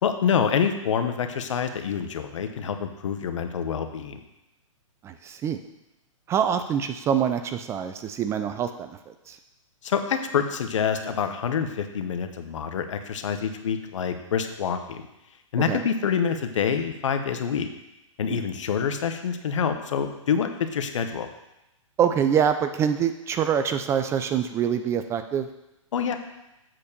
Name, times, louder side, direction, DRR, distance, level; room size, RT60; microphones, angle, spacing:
voice 1, 0.0-4.2 9.8-15.0 15.5-17.7 18.2-21.3 25.9-26.1, left 7 dB, 65° left, 7 dB, 1.0 m, -26 dB
voice 2, 5.0-5.6 6.3-9.0 9.3-9.4 15.7-15.8 18.3-18.4 22.0-25.5, right 8 dB, 15° right, 9 dB, 0.3 m, -25 dB
7.7 x 4.3 x 6.7 m, 0.91 s
hypercardioid pair, 120°, 17 cm